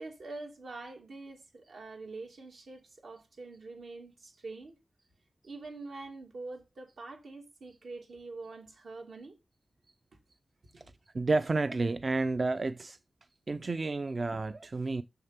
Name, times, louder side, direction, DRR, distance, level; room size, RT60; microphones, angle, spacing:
voice 1, 0.0-4.7 5.4-9.4 10.7-10.9, right 3 dB, 80° right, 2.5 m, -45 dB
voice 2, 11.1-13.0 13.5-15.0, right 3 dB, 40° right, 0.4 m, -30 dB
6.6 x 6.6 x 5.8 m
wide cardioid pair, 125°, 0 cm